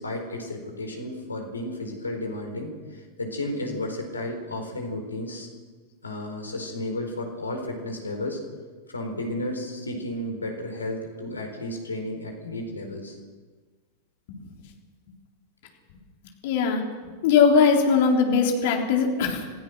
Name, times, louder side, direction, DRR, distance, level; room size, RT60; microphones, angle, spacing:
voice 1, 0.0-5.5 6.0-8.4 8.9-13.2, left 1 dB, 75° left, 3 dB, 4.4 m, -33 dB
voice 2, 16.4-16.8 17.2-19.5, left 5 dB, 50° left, 1 dB, 3.8 m, -20 dB
27.0 x 16.0 x 6.3 m, 1.4 s
figure-of-eight pair, 90°, 0 cm